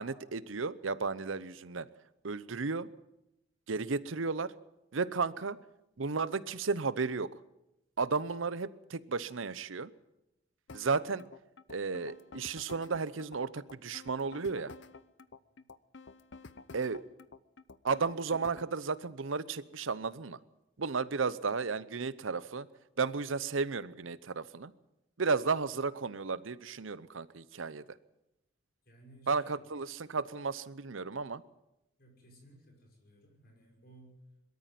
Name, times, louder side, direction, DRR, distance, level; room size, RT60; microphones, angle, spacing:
voice 1, 0.0-1.9 2.2-2.9 3.7-4.5 4.9-5.6 6.0-7.3 8.0-9.9 10.7-11.2 11.7-14.7 16.7-17.0 17.8-20.4 20.8-22.7 23.0-24.7 25.2-27.8 29.3-31.4, right 4 dB, 80° right, 17 dB, 0.8 m, -33 dB
sound 1, 10.7-18.7, left 4 dB, 65° left, 0.8 m, -51 dB
voice 2, 28.8-29.6 32.0-34.2, right 1 dB, 50° left, 1 dB, 6.0 m, -58 dB
22.0 x 13.5 x 9.3 m, 0.88 s
head